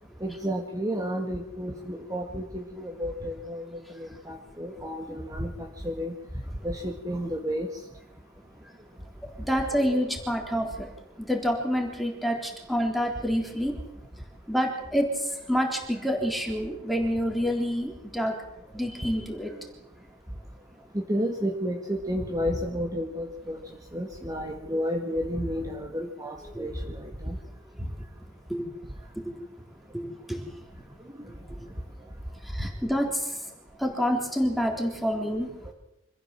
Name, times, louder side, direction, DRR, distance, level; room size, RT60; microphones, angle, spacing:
voice 1, 0.2-6.1 6.6-7.7 9.8-10.0 21.1-23.6 23.9-27.4 31.2-31.3 32.6-32.7 34.8-34.9, equal, 20° right, 1 dB, 2.0 m, -31 dB
voice 2, 9.4-10.9 11.2-13.7 14.5-18.4 18.7-19.7 26.5-26.7 28.5-28.7 29.3-29.4 29.9-30.5 32.4-33.4 33.8-35.5, equal, ahead, 2 dB, 3.7 m, -28 dB
26.0 x 15.5 x 7.7 m, 0.93 s
head